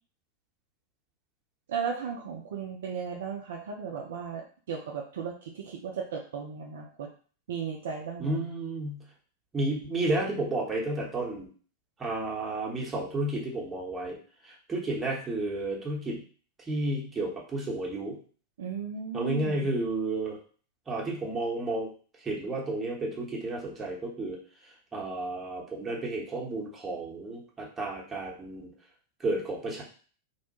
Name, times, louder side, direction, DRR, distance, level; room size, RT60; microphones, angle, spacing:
voice 1, 1.7-7.1 7.5-8.4 18.6-19.7, right 6 dB, 60° right, 2 dB, 0.3 m, -36 dB
voice 2, 8.2-9.0 9.5-11.5 12.0-14.2 14.4-16.2 16.6-18.2 19.1-20.4 20.9-21.9 22.2-24.4 24.9-28.7 29.2-29.8, right 2 dB, 15° right, -2 dB, 0.8 m, -32 dB
2.6 x 2.1 x 2.8 m, 0.42 s
figure-of-eight pair, 90°, 0 cm